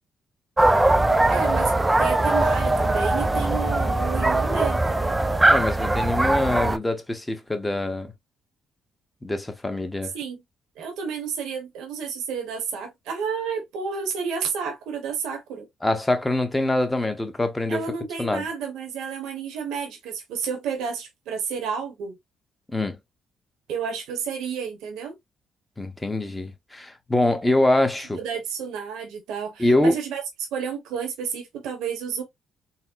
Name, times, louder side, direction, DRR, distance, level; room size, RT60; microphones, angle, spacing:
sound 1, 0.6-6.8, right 2 dB, 15° right, 0.4 m, -21 dB
voice 1, 1.3-5.2 10.1-10.4 10.8-15.7 17.7-22.2 23.7-25.2 28.2-30.2 30.5-32.2, right 6 dB, 90° right, 1.1 m, -31 dB
voice 2, 5.5-8.1 9.2-10.1 15.8-17.9 18.2-18.5 22.7-23.0 25.8-28.2 29.6-30.0, left 1 dB, 10° left, 0.8 m, -24 dB
4.1 x 2.1 x 2.5 m
cardioid pair, 90°, 0 cm